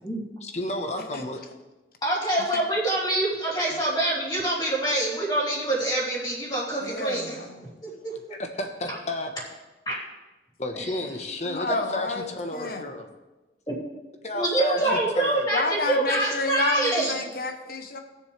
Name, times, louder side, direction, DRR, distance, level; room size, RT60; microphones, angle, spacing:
voice 1, 0.4-1.4 8.3-9.3 10.6-13.1 14.2-15.5, left 1 dB, 40° left, 4 dB, 1.2 m, -32 dB
voice 2, 2.0-7.3 7.8-8.1 8.9-9.0 9.9-10.0 10.7-10.8 13.7-13.8 14.3-17.1, right 1 dB, 25° left, -6 dB, 2.9 m, -25 dB
voice 3, 6.8-7.8 11.4-12.9 14.8-15.0 15.5-18.0, left 3 dB, 55° left, 6 dB, 1.1 m, -31 dB
18.5 x 7.0 x 3.4 m, 1.1 s
head